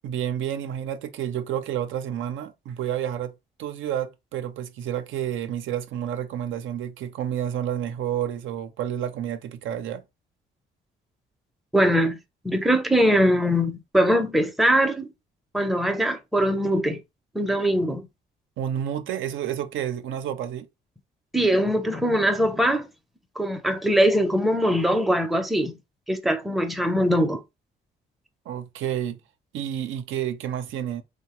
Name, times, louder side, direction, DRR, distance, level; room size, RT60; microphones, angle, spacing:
voice 1, 0.0-3.3 3.6-10.0 18.6-20.7 28.5-29.2 29.5-31.0, right 10 dB, 75° right, 0.5 m, -30 dB
voice 2, 11.7-12.2 12.4-15.1 15.5-17.0 17.3-18.0 21.3-22.9 23.4-25.8 26.1-27.4, equal, ahead, 0.5 m, -22 dB
3.1 x 2.1 x 2.8 m
cardioid pair, 90°, 20 cm